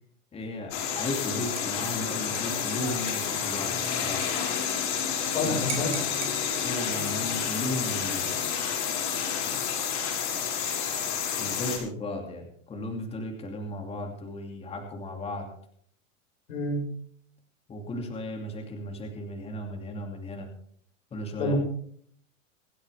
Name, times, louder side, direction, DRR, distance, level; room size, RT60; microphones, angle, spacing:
voice 1, 0.3-4.2 5.4-5.9 6.5-8.3 11.4-15.5 17.7-20.5 21.1-21.5, left 1 dB, 15° left, 2 dB, 2.6 m, -35 dB
sound 1, 0.7-11.8, left 7 dB, 60° left, 5.9 m, -30 dB
Dishes pots and pans / Liquid, 0.9-1.2 1.6-5.0 5.3-5.4 5.7-6.4 7.2-7.7, right 11 dB, 55° right, 3.4 m, -42 dB
voice 2, 5.3-6.0 16.5-16.8 21.4-21.5, left 2 dB, 85° left, 2 dB, 6.0 m, -28 dB
25.5 x 9.0 x 3.5 m, 0.62 s
supercardioid pair, 150°, 40 cm